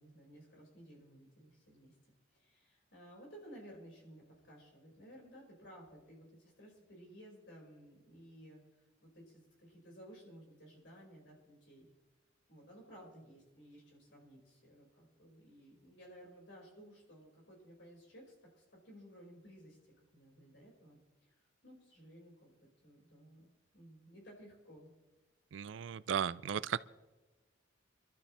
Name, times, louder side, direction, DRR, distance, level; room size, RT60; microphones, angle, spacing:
voice 1, 0.0-1.9 2.3-8.6 9.0-11.9 12.5-19.8 20.1-21.0 21.4-24.9, equal, 65° left, -2 dB, 5.5 m, -56 dB
voice 2, 25.5-26.8, right 8 dB, 70° right, 18 dB, 0.4 m, -35 dB
25.0 x 12.5 x 3.4 m, 1.1 s
head